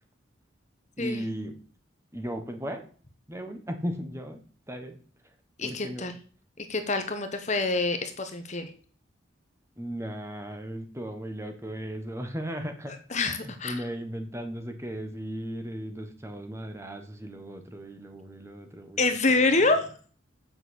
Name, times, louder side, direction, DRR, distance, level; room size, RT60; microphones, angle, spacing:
voice 1, 1.0-1.5 2.1-2.8 3.3-5.0 5.2-5.3 5.6-6.1 9.8-12.9 13.4-19.0 19.4-19.5, equal, 15° right, 6 dB, 1.4 m, -36 dB
voice 2, 5.6-6.2 6.6-8.7 13.1-13.8 19.0-19.9, left 3 dB, 35° left, 8 dB, 1.1 m, -26 dB
7.8 x 6.2 x 8.1 m, 0.42 s
head